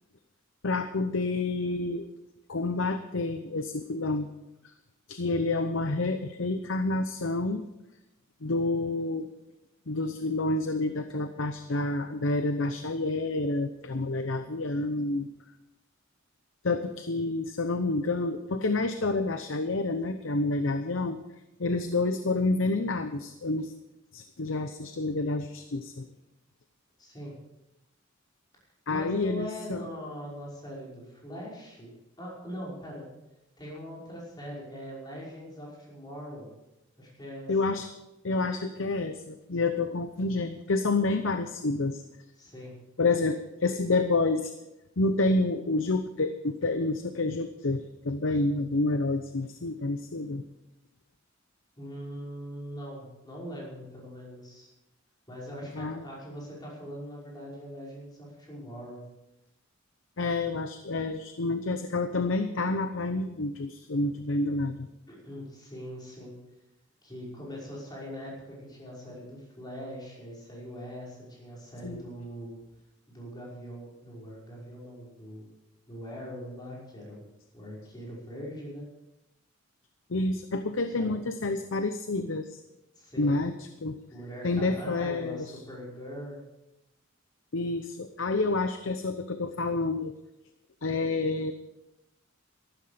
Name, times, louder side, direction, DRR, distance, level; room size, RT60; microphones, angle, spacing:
voice 1, 0.6-2.1 2.5-4.3 5.1-7.6 8.4-9.3 9.9-15.3 16.6-21.2 21.6-23.7 24.1-26.1 28.9-29.8 37.5-37.9 38.2-42.0 43.0-44.5 45.0-50.4 55.7-56.0 60.2-64.9 71.8-72.0 80.1-82.6 83.2-84.0 84.4-85.5 87.5-90.1 90.8-91.5, left 2 dB, 70° left, 9 dB, 0.8 m, -29 dB
voice 2, 27.0-27.3 28.9-33.0 33.6-36.5 37.0-37.8 42.4-42.8 51.8-54.7 55.3-59.1 65.1-66.4 67.0-72.6 73.1-75.5 75.9-77.3 77.5-78.9 80.9-81.2 83.0-83.4 84.1-86.4, equal, 20° left, -5 dB, 5.6 m, -42 dB
14.0 x 12.5 x 5.1 m, 0.92 s
head